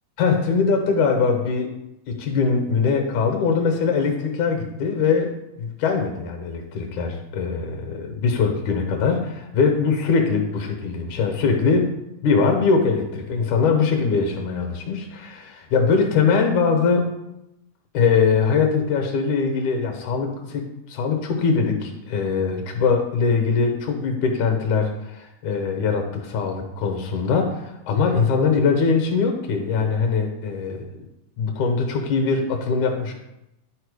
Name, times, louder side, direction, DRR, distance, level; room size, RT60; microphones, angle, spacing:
voice 1, 0.2-1.7 2.1-5.3 5.6-17.2 17.9-31.1 31.4-33.1, left 5 dB, 70° left, 4 dB, 2.3 m, -22 dB
10.5 x 4.4 x 4.8 m, 0.89 s
omnidirectional pair, 3.8 m